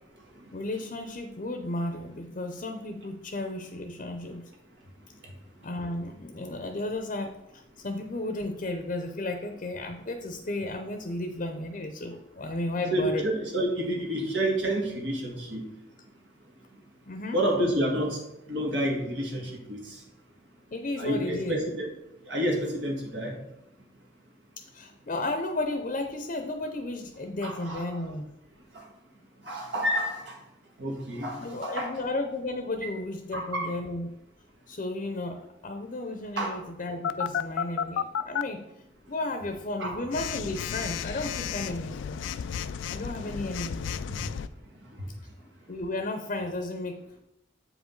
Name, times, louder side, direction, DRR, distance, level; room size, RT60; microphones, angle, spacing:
voice 1, 0.5-4.4 5.6-13.2 17.1-17.4 20.7-21.6 24.7-28.3 31.4-34.1 34.7-38.6 39.1-42.2 42.9-43.9 45.7-47.0, left 2 dB, 45° left, 6 dB, 0.6 m, -33 dB
voice 2, 12.9-15.6 17.3-18.2 18.5-19.8 21.0-21.9 22.3-23.3 27.4-27.8 29.5-30.2 30.8-31.9 33.3-33.7 36.4-36.6 39.8-39.9 44.1-44.2, right 1 dB, 70° right, 0 dB, 1.8 m, -29 dB
Telephone, 37.0-38.4 40.1-44.5, left 8 dB, 85° left, 0.3 m, -32 dB
7.7 x 5.0 x 3.9 m, 0.85 s
head